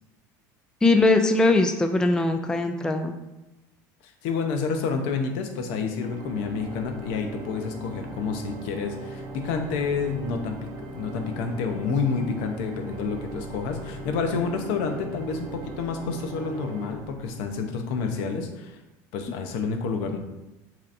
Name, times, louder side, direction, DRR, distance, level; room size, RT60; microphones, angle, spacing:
voice 1, 0.8-3.1, left 2 dB, 10° left, 6 dB, 0.3 m, -21 dB
voice 2, 4.0-10.6 10.9-18.8 19.1-20.2, left 5 dB, 70° left, 5 dB, 0.7 m, -29 dB
Organ, 5.9-17.8, right 2 dB, 60° right, 0.9 m, -39 dB
7.2 x 2.9 x 2.6 m, 1.0 s
supercardioid pair, 115°, 9 cm